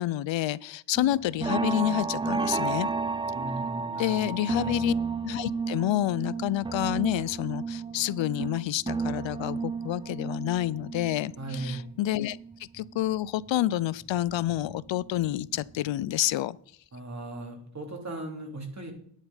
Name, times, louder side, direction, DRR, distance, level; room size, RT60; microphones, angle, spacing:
voice 1, 0.0-2.9 4.0-4.9 5.2-16.6, left 14 dB, 65° left, 21 dB, 0.5 m, -29 dB
sound 1, 0.9-13.1 13.5-15.1 15.4-15.8 16.1-16.2, right 4 dB, 10° right, 0.5 m, -33 dB
voice 2, 3.3-4.8 11.4-11.8 16.9-18.9, right 2 dB, 35° right, 2 dB, 2.9 m, -38 dB
10.0 x 8.6 x 4.0 m, 0.64 s
cardioid pair, 75°, 49 cm